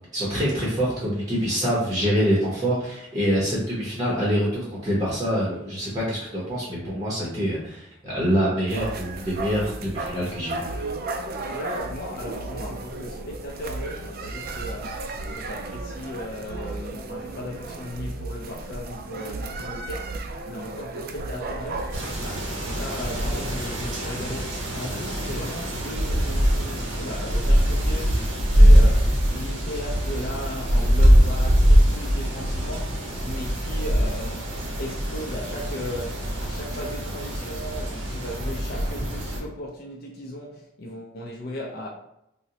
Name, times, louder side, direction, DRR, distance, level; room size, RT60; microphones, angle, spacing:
voice 1, 0.1-10.7, equal, 20° right, 0.7 m, -25 dB
sound 1, 8.7-22.1, right 2 dB, 50° right, 0.3 m, -34 dB
voice 2, 11.5-41.9, left 1 dB, 50° left, 0.4 m, -37 dB
sound 2, 21.9-39.4, equal, 75° right, 0.7 m, -22 dB
3.7 x 2.1 x 2.7 m
head